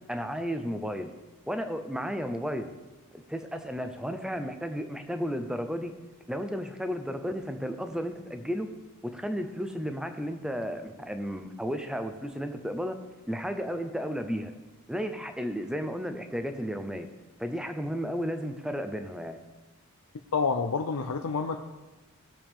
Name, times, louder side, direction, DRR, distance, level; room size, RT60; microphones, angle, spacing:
voice 1, 0.1-1.1 1.5-2.7 3.1-5.9 6.3-8.7 9.0-13.0 13.3-14.5 14.9-17.1 17.4-19.4, equal, 5° right, 7 dB, 0.6 m, -33 dB
voice 2, 20.3-21.6, left 5 dB, 80° left, 5 dB, 0.6 m, -28 dB
18.0 x 7.0 x 3.6 m, 1.2 s
head